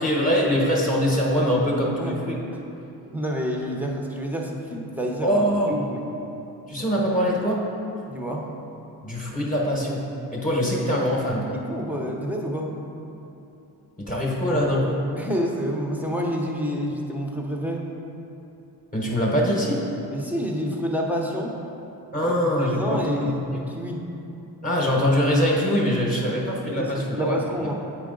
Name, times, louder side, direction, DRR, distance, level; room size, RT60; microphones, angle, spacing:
voice 1, 0.0-2.3 5.2-5.8 6.7-7.6 9.0-11.6 14.0-15.1 18.9-19.8 22.1-23.4 24.6-27.4, equal, 20° left, -2 dB, 1.1 m, -23 dB
voice 2, 3.1-5.4 5.7-6.0 8.1-8.5 11.6-12.7 15.1-17.8 20.1-21.5 22.2-24.1 26.7-26.9 27.1-27.7, equal, 5° right, -1 dB, 0.8 m, -28 dB
8.2 x 4.8 x 3.8 m, 2.8 s
cardioid pair, 105°, 41 cm